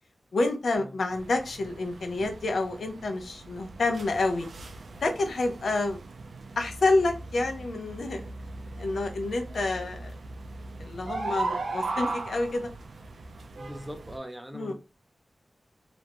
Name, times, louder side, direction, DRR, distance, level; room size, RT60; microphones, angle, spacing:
voice 1, 0.3-4.5 5.0-6.0 6.6-8.2 8.7-10.1 10.8-12.7 14.5-14.7, left 2 dB, 85° left, 0.5 m, -28 dB
sound 1, 1.1-14.2, right 3 dB, 85° right, 0.3 m, -38 dB
voice 2, 13.6-14.7, equal, 10° right, 0.7 m, -40 dB
2.5 x 2.1 x 2.9 m
wide cardioid pair, 60°, 0 cm